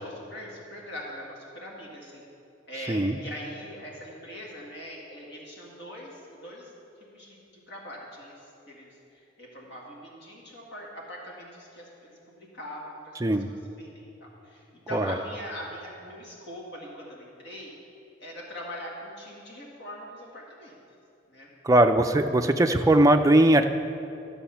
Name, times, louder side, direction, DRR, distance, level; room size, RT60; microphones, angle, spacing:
voice 1, 0.0-2.2 2.7-6.7 7.1-17.7 18.2-20.8 21.3-21.5, equal, 55° left, -3 dB, 1.9 m, -42 dB
voice 2, 2.9-3.2 13.2-13.5 14.9-15.2 21.6-23.7, right 1 dB, 15° right, 6 dB, 0.4 m, -20 dB
13.0 x 7.0 x 5.8 m, 2.7 s
head